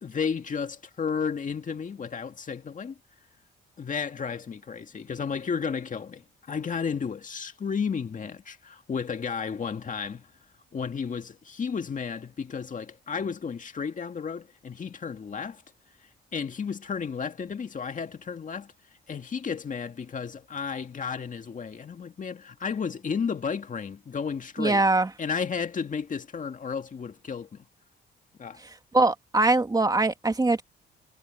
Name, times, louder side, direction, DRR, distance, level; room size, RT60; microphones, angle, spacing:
voice 1, 0.0-2.9 3.8-10.3 10.7-15.6 16.3-18.7 19.1-24.8 25.2-27.6 28.4-28.6, left 6 dB, 40° left, 2.1 m, -33 dB
voice 2, 24.6-25.1 28.9-30.6, right 2 dB, 20° right, 2.4 m, -22 dB
cardioid pair, 90°, 20 cm